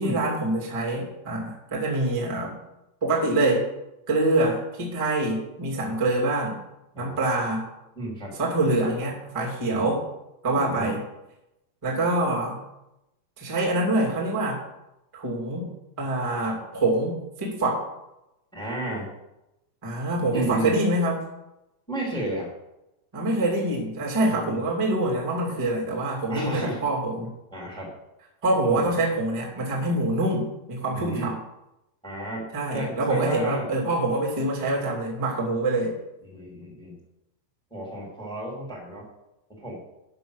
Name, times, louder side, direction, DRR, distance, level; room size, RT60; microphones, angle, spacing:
voice 1, 0.0-2.6 3.0-3.6 4.1-6.6 6.9-7.6 8.3-10.0 10.4-11.0 11.8-12.6 13.4-14.6 15.1-15.7 16.0-17.8 19.8-21.2 23.1-27.3 28.4-31.4 32.5-35.9, right 2 dB, 20° right, -3 dB, 0.8 m, -25 dB
voice 2, 7.9-8.3 9.6-9.9 10.5-10.9 18.5-19.1 20.3-20.7 21.9-22.5 24.3-24.7 26.3-26.8 27.5-27.9 28.7-28.9 30.9-31.4 32.0-32.5 32.7-33.7 36.3-37.0 37.7-39.0 39.5-39.8, right 1 dB, ahead, -3 dB, 1.2 m, -32 dB
10.5 x 5.8 x 6.4 m, 0.91 s
omnidirectional pair, 5.8 m